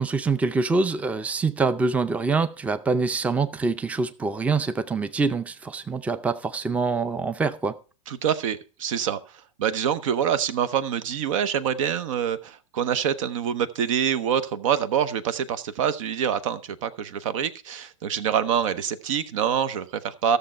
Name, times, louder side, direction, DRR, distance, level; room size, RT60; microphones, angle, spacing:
voice 1, 0.0-7.8, right 4 dB, 10° right, 0.5 m, -25 dB
voice 2, 8.1-9.2 9.6-20.4, right 8 dB, 70° right, 0.8 m, -26 dB
13.5 x 6.7 x 4.3 m
hypercardioid pair, 110°, 17 cm